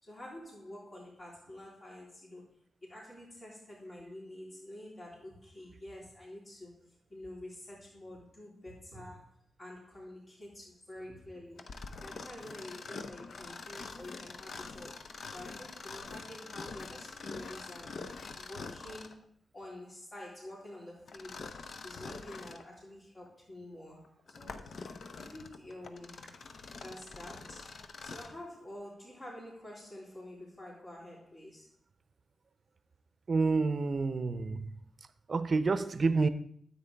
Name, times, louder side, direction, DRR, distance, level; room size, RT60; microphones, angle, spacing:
voice 1, 0.0-2.5 2.8-6.8 7.1-18.0 18.3-19.2 19.5-24.9 25.2-26.2 26.8-27.8 28.0-31.7, left 1 dB, 40° left, 3.6 m, -48 dB
Mechanisms, 11.6-19.2 21.1-22.7 23.3-23.4 24.0-28.4, left 4 dB, 65° left, 0.7 m, -45 dB
voice 2, 33.3-34.7 35.3-36.3, right 4 dB, 50° right, 0.6 m, -28 dB
9.6 x 8.1 x 3.4 m
cardioid pair, 55°, 0 cm